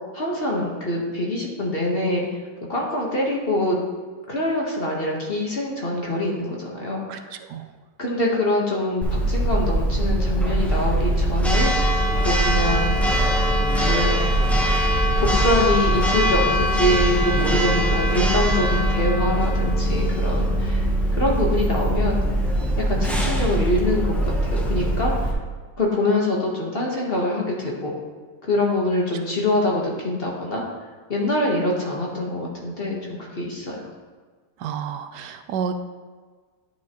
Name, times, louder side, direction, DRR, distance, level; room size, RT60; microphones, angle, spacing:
voice 1, 0.1-2.2 2.7-3.8 4.3-7.3 8.0-11.9 12.2-12.9 13.8-14.2 15.2-22.2 22.9-25.1 25.8-27.9 28.5-30.6 31.1-33.8, left 1 dB, 40° left, -2 dB, 1.2 m, -24 dB
voice 2, 7.1-7.7 29.1-29.2 34.6-35.7, right 7 dB, 80° right, 8 dB, 1.2 m, -31 dB
Church bell, 9.0-25.3, right 1 dB, ahead, 0.3 m, -21 dB
10.0 x 6.3 x 2.9 m, 1.5 s
omnidirectional pair, 1.8 m